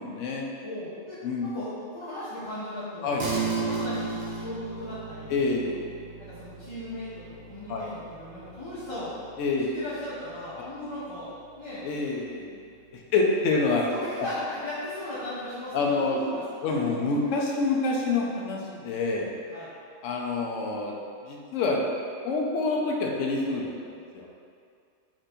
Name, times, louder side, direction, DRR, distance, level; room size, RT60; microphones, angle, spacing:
voice 1, 0.0-0.5 1.2-1.5 3.0-3.2 5.3-5.8 7.7-7.9 9.4-9.7 10.6-10.7 11.8-12.6 12.9-13.8 14.2-14.3 15.7-16.2 16.6-19.3 20.0-21.0 21.2-21.8 22.2-24.3, left 3 dB, 75° left, 0 dB, 1.0 m, -27 dB
voice 2, 0.6-5.4 6.2-9.2 9.7-11.9 13.1-13.2 13.8-17.2 19.5-19.7, left 1 dB, 30° left, -11 dB, 0.6 m, -38 dB
sound 1, 3.2-12.9, right 4 dB, 45° right, 0.8 m, -37 dB
4.5 x 2.6 x 4.2 m, 2.3 s
omnidirectional pair, 1.3 m